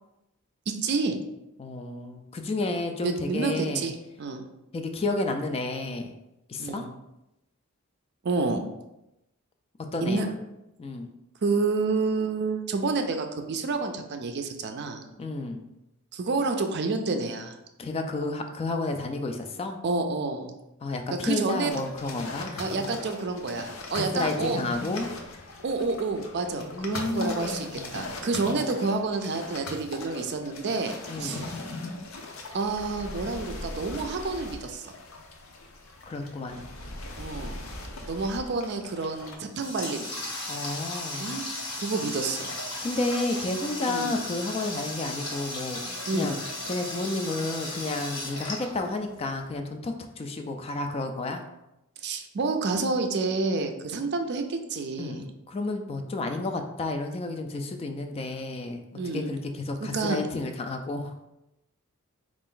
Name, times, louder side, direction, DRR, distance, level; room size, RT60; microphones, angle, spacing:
voice 1, 0.7-1.1 3.0-4.4 6.6-6.9 8.2-8.6 10.0-10.3 11.4-15.0 16.1-17.5 19.8-20.5 21.1-21.7 22.6-24.6 25.6-30.9 31.2-31.6 32.5-34.9 37.2-37.6 38.1-40.1 41.2-41.5 41.8-42.5 43.9-44.1 46.1-46.4 52.0-55.2 58.9-59.3 59.8-60.2, right 3 dB, 50° right, 5 dB, 0.4 m, -29 dB
voice 2, 1.6-3.8 4.7-6.1 6.5-6.8 9.9-10.3 10.8-11.1 15.2-15.7 17.8-19.8 20.8-22.6 23.9-25.1 26.5-28.0 28.5-28.6 31.1-31.4 36.1-36.7 40.5-41.3 42.8-46.4 46.7-51.4 55.0-58.8 59.1-61.1, left 2 dB, 25° left, 5 dB, 0.3 m, -31 dB
sound 1, 21.7-39.4, left 2 dB, 70° left, 0.6 m, -39 dB
Water tap faucet, 39.2-49.4, left 1 dB, 85° left, 1.5 m, -36 dB
4.1 x 2.5 x 3.7 m, 0.91 s
head